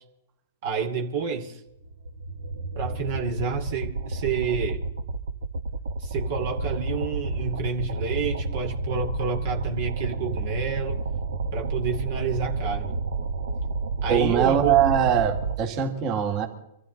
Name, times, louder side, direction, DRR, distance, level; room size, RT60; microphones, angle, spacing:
voice 1, 0.6-1.6 2.8-4.8 6.0-11.0 11.5-13.0 14.0-14.8, right 5 dB, 60° right, 3 dB, 2.4 m, -29 dB
sound 1, 1.8-15.6, right 3 dB, 80° right, 1.4 m, -30 dB
voice 2, 14.1-16.5, right 8 dB, 40° right, 4 dB, 2.6 m, -22 dB
25.0 x 14.0 x 4.0 m, 0.81 s
hypercardioid pair, 115°, 0 cm